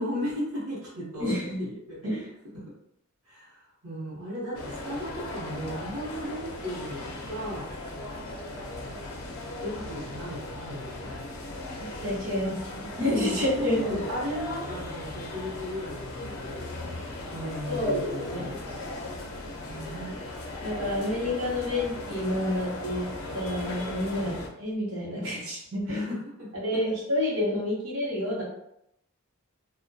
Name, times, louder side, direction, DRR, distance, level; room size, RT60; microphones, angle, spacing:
voice 1, 0.0-1.3 1.6-2.1 2.5-2.6 3.3-7.7 9.6-11.2 13.3-17.0 17.3-18.8 19.7-20.2 24.2-24.4 25.8-26.8, equal, 90° right, -7 dB, 0.8 m, -36 dB
voice 2, 1.2-1.6 2.0-2.3 12.0-14.0 17.7-18.5 20.6-23.1 23.3-26.0 26.5-28.4, left 1 dB, 65° right, -6 dB, 0.9 m, -29 dB
sound 1, 4.5-24.5, left 2 dB, 70° left, 0.4 m, -38 dB
2.2 x 2.1 x 2.6 m, 0.78 s
head